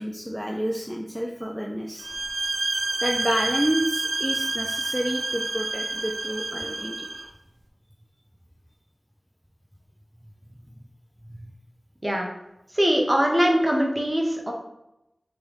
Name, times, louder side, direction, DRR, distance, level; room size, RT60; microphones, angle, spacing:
voice 1, 0.0-2.1 3.0-7.1 11.3-11.5, equal, 5° right, 0 dB, 0.4 m, -29 dB
sound 1, 2.0-7.3, right 2 dB, 80° right, 0.5 m, -29 dB
voice 2, 12.7-14.5, equal, 25° right, 1 dB, 0.8 m, -22 dB
3.3 x 3.0 x 3.3 m, 0.89 s
wide cardioid pair, 40°, 0 cm